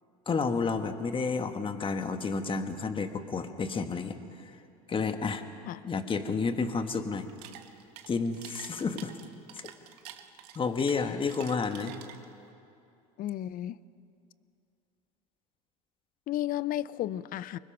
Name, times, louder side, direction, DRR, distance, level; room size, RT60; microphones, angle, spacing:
voice 1, 0.3-4.5 4.9-5.4 5.8-7.3 8.1-9.1 9.5-9.7 10.5-11.9, left 4 dB, 25° left, 8 dB, 1.6 m, -31 dB
sound 1, 7.2-12.5, right 11 dB, 75° right, 1.5 m, -48 dB
voice 2, 13.2-13.8 16.3-17.6, left 13 dB, 45° left, 19 dB, 0.6 m, -33 dB
25.0 x 21.0 x 6.0 m, 2.6 s
supercardioid pair, 90°, 20 cm